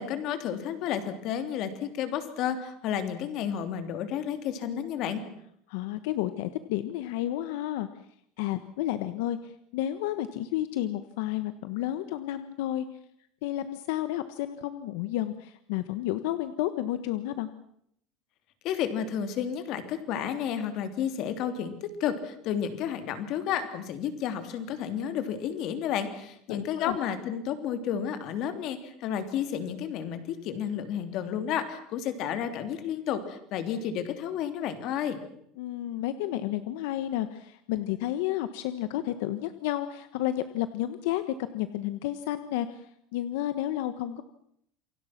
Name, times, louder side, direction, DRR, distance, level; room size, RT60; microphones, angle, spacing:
voice 1, 0.0-5.2 18.6-35.2, left 9 dB, 40° left, 8 dB, 3.2 m, -31 dB
voice 2, 5.7-7.9 8.4-12.9 13.4-17.5 26.5-27.0 35.6-44.2, left 13 dB, 70° left, 11 dB, 1.3 m, -31 dB
28.0 x 24.5 x 6.0 m, 0.71 s
cardioid pair, 175°, 0 cm